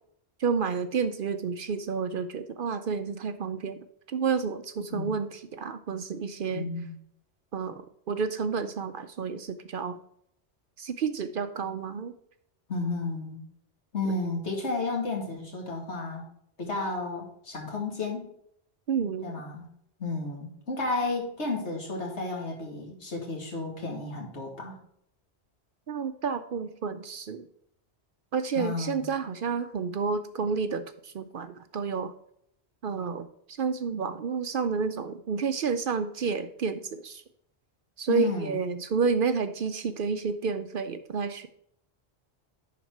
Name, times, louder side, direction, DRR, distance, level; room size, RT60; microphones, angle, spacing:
voice 1, 0.4-3.8 4.1-6.7 7.5-10.0 10.8-12.1 18.9-19.3 25.9-27.5 28.3-32.1 32.8-37.2 38.0-41.5, right 5 dB, 60° right, 10 dB, 0.7 m, -30 dB
voice 2, 6.5-6.9 12.7-13.4 13.9-16.3 16.6-18.2 19.2-19.7 20.0-24.8 28.6-29.1 38.1-38.6, left 3 dB, 80° left, 0 dB, 2.4 m, -32 dB
10.5 x 4.3 x 4.6 m, 0.71 s
omnidirectional pair, 1.2 m